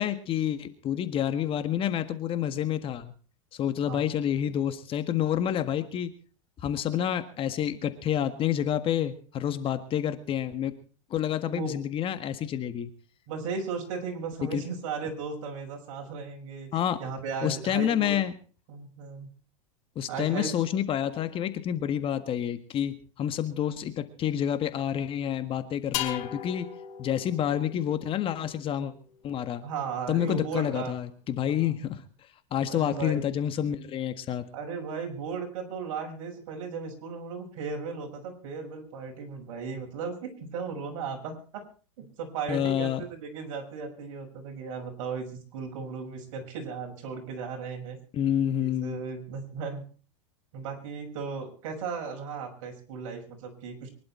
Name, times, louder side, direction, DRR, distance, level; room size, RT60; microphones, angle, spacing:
voice 1, 0.0-3.1 3.5-6.1 6.6-10.7 11.1-12.9 14.4-14.6 16.7-17.0 17.4-18.3 19.9-26.7 27.0-28.9 29.2-29.6 30.1-32.0 32.5-34.4 42.5-43.0 48.1-49.0, left 10 dB, 30° left, 11 dB, 1.7 m, -28 dB
voice 2, 11.4-11.8 13.3-18.2 18.7-19.3 20.1-20.5 29.6-31.0 31.6-31.7 32.7-33.2 34.5-41.6 42.0-48.0 48.6-49.8 50.5-53.9, right 5 dB, 65° right, 2 dB, 6.2 m, -36 dB
sound 1, 25.9-29.6, left 11 dB, 60° left, 4.3 m, -38 dB
24.0 x 11.5 x 4.4 m, 0.39 s
supercardioid pair, 130°, 17 cm